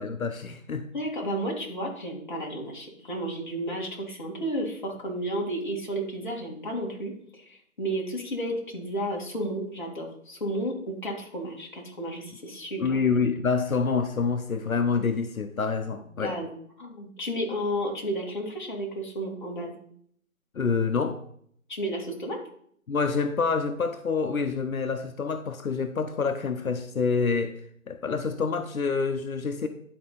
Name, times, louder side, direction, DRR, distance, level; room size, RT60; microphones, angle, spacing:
voice 1, 0.0-0.9 12.8-16.3 20.5-21.2 22.9-27.6 27.9-29.7, left 5 dB, 85° left, 8 dB, 0.8 m, -27 dB
voice 2, 0.9-13.0 15.9-16.5 16.8-19.8 21.7-22.4, right 1 dB, 35° left, -2 dB, 1.8 m, -32 dB
11.0 x 4.3 x 3.9 m, 0.65 s
figure-of-eight pair, 165°, 41 cm